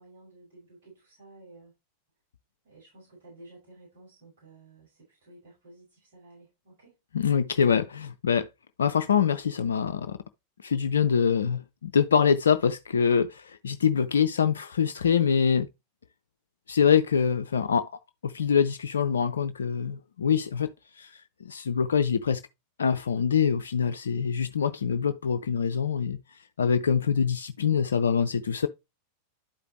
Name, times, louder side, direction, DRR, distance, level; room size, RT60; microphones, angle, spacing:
voice 1, 0.0-1.7 2.6-7.0, right 2 dB, 60° right, 5.7 m, -53 dB
voice 2, 7.1-8.5 8.8-10.2 10.6-15.7 16.7-17.9 18.2-22.4 22.8-28.7, left 7 dB, 70° left, 0.4 m, -25 dB
11.5 x 4.9 x 3.0 m
figure-of-eight pair, 90°, 0 cm